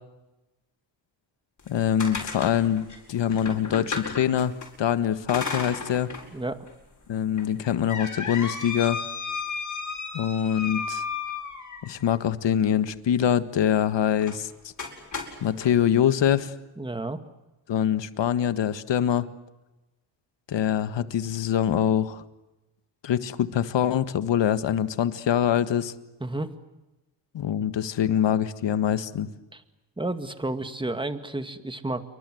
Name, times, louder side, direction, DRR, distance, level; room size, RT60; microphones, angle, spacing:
sound 1, 1.6-4.7 5.3-6.3 6.7-6.8 7.4-12.0 14.2-14.4 14.8-15.7, left 5 dB, 40° left, 7.9 m, -34 dB
voice 1, 1.7-4.5 4.8-6.1 7.1-9.0 10.1-11.0 11.8-14.5 15.4-16.5 17.7-19.3 20.5-22.2 23.0-25.9 27.3-29.3, left 9 dB, 65° left, 12 dB, 1.7 m, -24 dB
voice 2, 6.3-6.7 16.8-17.2 26.2-26.5 29.5-29.6 30.0-32.0, right 2 dB, 10° right, 9 dB, 2.1 m, -31 dB
28.5 x 24.0 x 7.9 m, 1.0 s
cardioid pair, 95°, 46 cm